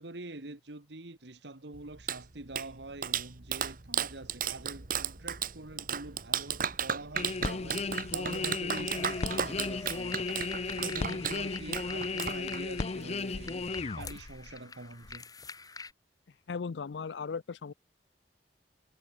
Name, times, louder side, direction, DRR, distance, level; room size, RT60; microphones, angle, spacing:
voice 1, 0.0-15.2, right 2 dB, 75° right, 1.8 m, -45 dB
Clapping, 1.7-12.9, right 8 dB, 55° right, 1.7 m, -35 dB
sound 1, 7.1-14.6 15.0-15.2, left 3 dB, 40° left, 0.6 m, -35 dB
sound 2, 8.9-15.9, left 4 dB, 20° left, 1.5 m, -46 dB
voice 2, 16.5-17.7, left 5 dB, 80° left, 0.5 m, -37 dB
head